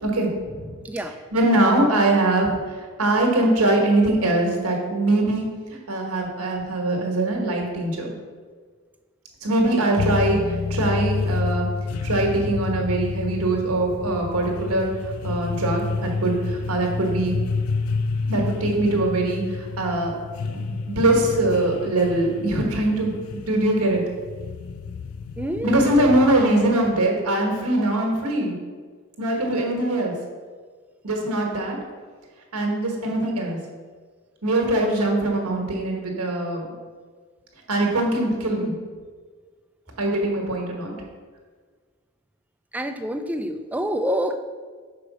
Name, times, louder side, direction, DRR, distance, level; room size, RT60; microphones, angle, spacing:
voice 1, 0.0-0.7 1.3-2.5 3.0-5.4 5.9-8.1 9.4-10.4 10.7-11.7 12.0-14.9 15.2-16.3 16.7-17.3 18.3-19.4 19.8-20.1 20.5-24.0 25.6-28.5 29.2-30.1 31.0-31.8 32.5-33.6 34.4-36.6 37.7-38.7 40.0-40.9, right 1 dB, 90° right, 1 dB, 1.4 m, -22 dB
voice 2, 0.8-1.1 25.4-26.1 42.7-44.4, right 1 dB, 5° right, 7 dB, 0.3 m, -27 dB
sound 1, 10.0-26.8, left 4 dB, 70° left, 0.3 m, -29 dB
4.9 x 4.8 x 6.1 m, 1.5 s
head